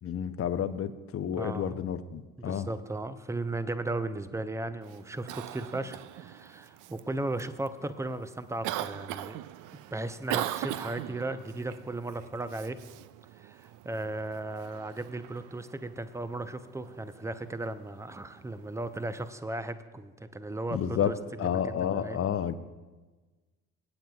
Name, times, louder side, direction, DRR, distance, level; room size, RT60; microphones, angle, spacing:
voice 1, 0.0-2.7 20.7-22.5, left 8 dB, 40° left, 12 dB, 0.8 m, -30 dB
voice 2, 1.3-1.7 2.4-9.4 9.9-12.8 13.4-22.2, right 2 dB, 10° right, 12 dB, 0.7 m, -36 dB
Cough, 4.8-19.3, right 13 dB, 60° right, 0.5 m, -41 dB
24.5 x 9.0 x 2.4 m, 1.3 s
hypercardioid pair, 55°, 36 cm